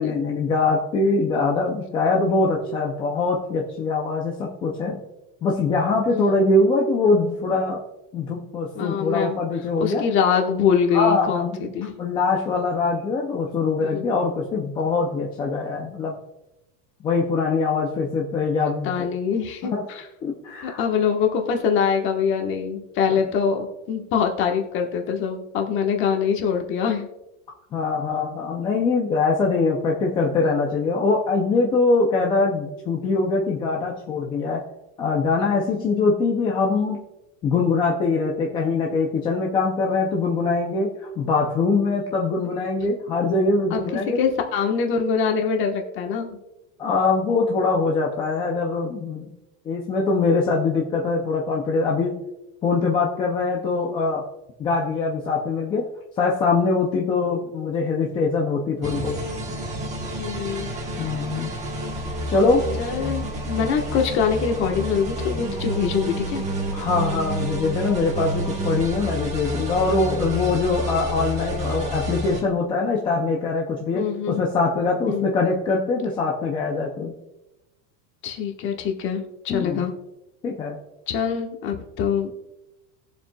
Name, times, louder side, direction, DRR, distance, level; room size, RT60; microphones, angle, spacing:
voice 1, 0.0-5.0 5.4-7.8 8.1-10.0 10.9-11.7 12.0-16.1 17.0-19.1 19.7-19.8 20.2-20.8 27.7-34.6 35.0-37.0 37.4-44.2 46.8-49.3 49.7-52.1 52.6-54.2 54.6-55.8 56.2-59.2 61.0-61.5 62.3-62.6 66.7-77.1 79.5-79.9 80.4-80.8, left 3 dB, 15° left, -1 dB, 0.4 m, -23 dB
voice 2, 8.7-9.4 9.8-12.0 13.8-14.1 18.8-20.0 20.6-27.1 43.7-43.8 44.1-46.4 60.2-60.7 62.8-66.4 73.9-74.4 75.1-75.3 78.2-79.9 81.1-82.4, left 6 dB, 30° left, 3 dB, 1.2 m, -24 dB
sound 1, 58.8-72.4, right 1 dB, 15° right, 1.3 m, -29 dB
20.0 x 7.3 x 2.2 m, 0.97 s
supercardioid pair, 170°, 40 cm